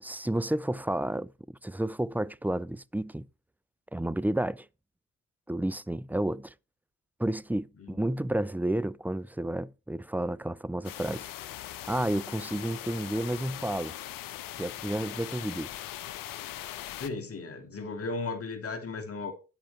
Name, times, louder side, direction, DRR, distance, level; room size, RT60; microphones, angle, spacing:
voice 1, 0.0-3.3 3.9-4.7 5.5-6.5 7.2-11.3 11.9-13.9 14.6-15.8, right 1 dB, 5° right, 0.5 m, -31 dB
sound 1, 10.8-17.1, left 13 dB, 70° left, 1.0 m, -40 dB
voice 2, 17.0-19.3, left 3 dB, 40° left, 2.8 m, -35 dB
13.0 x 10.0 x 3.4 m
hypercardioid pair, 45°, 34 cm